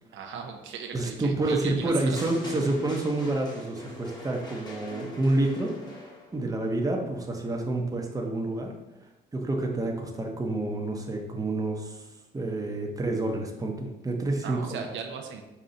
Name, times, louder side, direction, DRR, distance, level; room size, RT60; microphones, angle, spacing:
voice 1, 0.1-2.2 14.4-15.4, right 6 dB, 75° right, 3 dB, 0.6 m, -37 dB
voice 2, 0.9-5.7 6.3-8.7 9.3-12.1 12.3-14.9, right 2 dB, 15° right, 1 dB, 0.8 m, -28 dB
sound 1, 2.2-6.4, left 1 dB, 20° left, 1.1 m, -43 dB
5.5 x 2.3 x 3.9 m, 0.99 s
cardioid pair, 90°, 20 cm